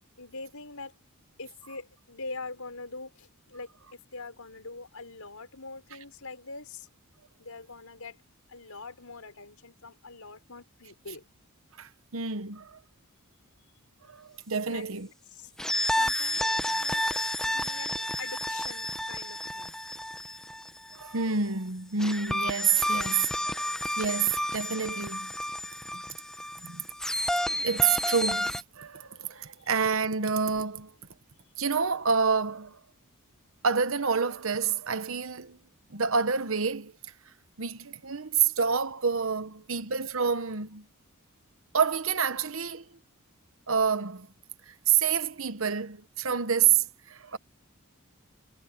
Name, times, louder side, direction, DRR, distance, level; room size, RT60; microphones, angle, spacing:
voice 1, 0.2-0.9 1.4-3.7 4.1-6.9 7.4-8.1 8.5-11.2 14.7-14.9 15.3-15.5 15.9-17.0 17.4-19.8, left 3 dB, 75° left, 5.1 m, -43 dB
voice 2, 11.8-12.8 14.0-15.1 20.9-23.7 24.0-25.3 25.9-26.2 26.6-26.9 27.6-30.9 31.6-32.8 33.6-35.6 35.9-36.9 37.6-40.9 41.7-42.9 43.7-44.3 44.7-47.4, right 6 dB, 65° right, 1.1 m, -28 dB
sound 1, 15.6-21.2 22.0-28.6, left 1 dB, 5° left, 0.9 m, -31 dB
head